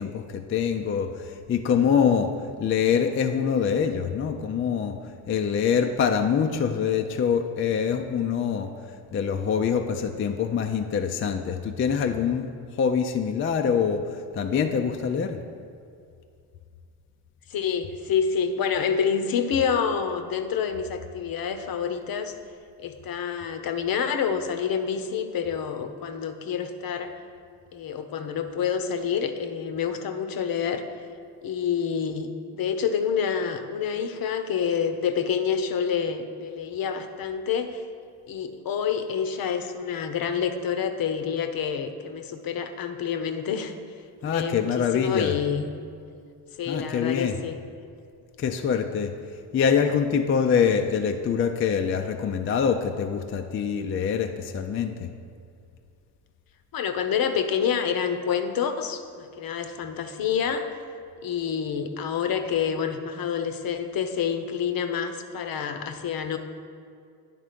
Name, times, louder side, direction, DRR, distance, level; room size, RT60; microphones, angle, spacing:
voice 1, 0.0-2.3 2.6-5.0 5.3-8.7 9.1-12.5 12.8-15.4 44.2-45.4 46.7-47.4 48.4-49.1 49.5-55.1, left 7 dB, 30° left, 6 dB, 0.4 m, -25 dB
voice 2, 17.5-22.3 22.8-27.1 27.7-30.8 31.4-37.8 38.3-43.7 44.2-45.7 46.6-47.6 56.7-60.7 61.2-66.4, left 7 dB, 45° left, 8 dB, 0.8 m, -28 dB
10.0 x 3.6 x 5.1 m, 2.3 s
hypercardioid pair, 65°, 47 cm